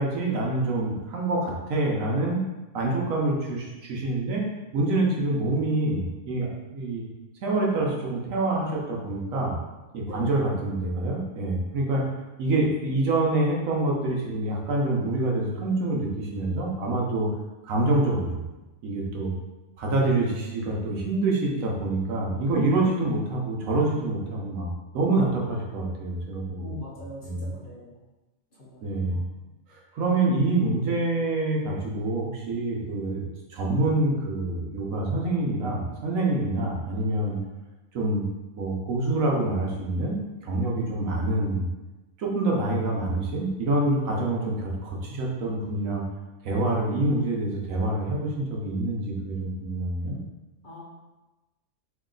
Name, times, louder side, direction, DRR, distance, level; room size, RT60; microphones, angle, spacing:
voice 1, 0.0-2.4 2.7-4.4 4.7-7.1 7.4-9.6 9.9-12.1 12.4-17.3 17.6-18.3 18.8-19.3 19.8-26.7 27.2-27.5 28.8-29.2 29.7-33.2 33.5-37.4 37.9-38.3 38.6-41.7 42.2-46.0 46.4-50.2, right 2 dB, 80° right, -2 dB, 1.2 m, -26 dB
voice 2, 10.1-10.4 26.6-28.0 28.5-29.2 50.6-50.8, left 1 dB, 45° left, -6 dB, 1.0 m, -42 dB
3.2 x 3.0 x 3.8 m, 1.1 s
omnidirectional pair, 1.4 m